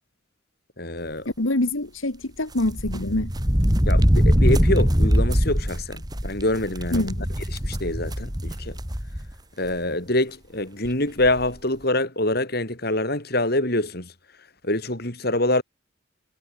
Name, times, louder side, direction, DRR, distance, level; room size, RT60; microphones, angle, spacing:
voice 1, 0.8-1.3 3.9-7.1 7.5-8.8 9.6-14.1 14.6-15.6, left 1 dB, 50° left, 4.9 m, -25 dB
voice 2, 1.4-3.3 6.9-7.3, left 1 dB, 80° left, 2.3 m, -25 dB
sound 1, 2.6-9.3 9.7-9.8 10.8-10.9 11.2-11.5, equal, 20° right, 5.7 m, -22 dB
head